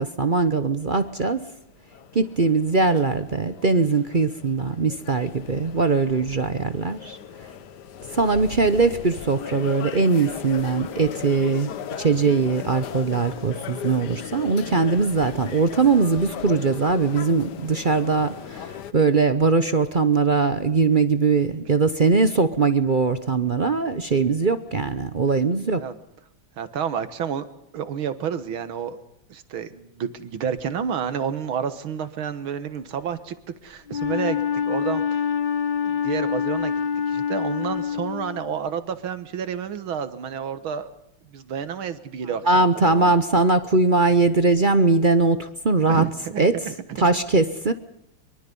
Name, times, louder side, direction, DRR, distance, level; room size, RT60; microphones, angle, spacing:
voice 1, 0.0-1.4 2.1-7.2 8.1-11.7 12.0-25.8 42.4-46.0 46.4-46.6 47.0-47.7, right 4 dB, 45° right, 11 dB, 0.6 m, -21 dB
sound 1, 0.9-18.9, left 9 dB, 60° left, 1.4 m, -38 dB
voice 2, 26.6-27.5 27.7-29.0 29.3-33.4 33.6-35.3 35.8-36.8 37.1-40.9 41.3-43.1 45.9-47.0, right 8 dB, 80° right, 12 dB, 2.2 m, -30 dB
Wind instrument woodwind instrument, 33.9-38.6, left 7 dB, 80° left, 0.4 m, -26 dB
23.5 x 23.5 x 5.4 m, 0.78 s
omnidirectional pair, 2.2 m